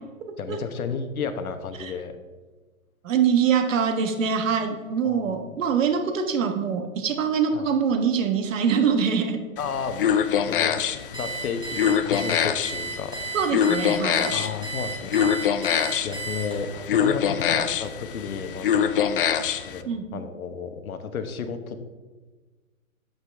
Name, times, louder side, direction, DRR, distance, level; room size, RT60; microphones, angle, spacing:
voice 1, 0.4-2.2 5.0-5.3 7.5-7.7 9.6-10.0 10.4-13.2 14.2-15.8 16.0-19.1 19.6-21.8, left 6 dB, 85° left, 9 dB, 1.2 m, -33 dB
voice 2, 3.0-9.4 13.3-14.3 19.8-20.2, right 6 dB, 65° right, 6 dB, 1.4 m, -24 dB
sound 1, 9.6-19.8, left 8 dB, 40° left, 0.4 m, -25 dB
Alarm, 11.1-16.8, right 4 dB, 10° right, 1.7 m, -34 dB
8.3 x 8.1 x 3.5 m, 1.3 s
hypercardioid pair, 155°, 42 cm